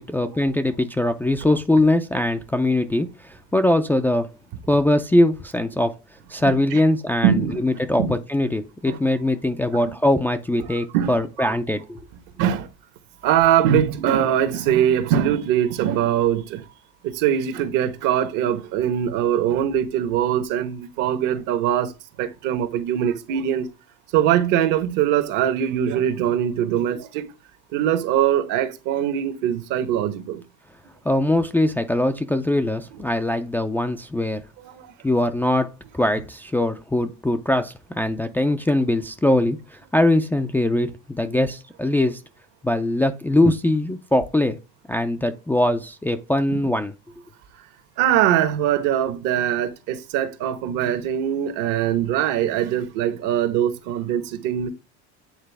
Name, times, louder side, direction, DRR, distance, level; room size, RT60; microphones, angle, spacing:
voice 1, 0.0-4.3 4.7-5.9 6.3-12.0 31.0-34.4 35.0-42.2 42.6-44.6 44.9-46.9, left 1 dB, 5° left, 0.4 m, -22 dB
voice 2, 6.5-6.8 7.2-8.2 8.9-9.0 9.7-9.8 10.6-10.7 10.9-11.6 12.4-12.7 13.2-16.6 17.0-21.9 22.2-23.7 24.1-27.2 27.7-30.4 34.6-34.9 41.2-41.4 46.5-46.6 48.0-54.7, right 10 dB, 65° right, 1.2 m, -22 dB
8.9 x 3.9 x 3.4 m
supercardioid pair, 125°, 34 cm